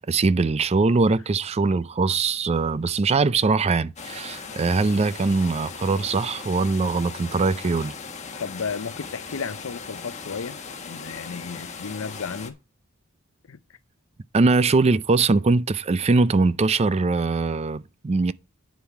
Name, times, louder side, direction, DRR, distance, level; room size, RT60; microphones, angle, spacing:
voice 1, 0.0-7.9 14.3-18.3, right 3 dB, 30° right, 0.4 m, -22 dB
sound 1, 4.0-12.5, left 5 dB, 30° left, 1.4 m, -38 dB
voice 2, 8.4-10.6 10.8-12.6 13.5-13.6, left 5 dB, 65° left, 0.6 m, -33 dB
9.6 x 7.0 x 4.7 m
head